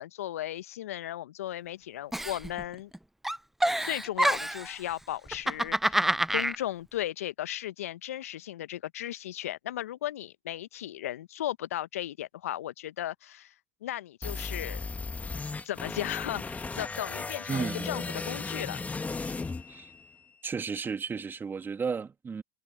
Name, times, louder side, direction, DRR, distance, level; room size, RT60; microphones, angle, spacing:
voice 1, 0.0-2.9 3.8-13.5 13.8-14.8 15.6-18.8, left 13 dB, 80° left, 0.9 m, -36 dB
Giggle, 2.1-3.0 3.2-4.7 5.3-6.6, right 1 dB, 5° right, 0.6 m, -27 dB
sound 1, 14.2-20.2, left 4 dB, 20° left, 1.8 m, -36 dB
voice 2, 17.5-17.9 19.7-19.9 20.4-22.4, right 5 dB, 25° right, 2.3 m, -33 dB
hypercardioid pair, 70°, 8 cm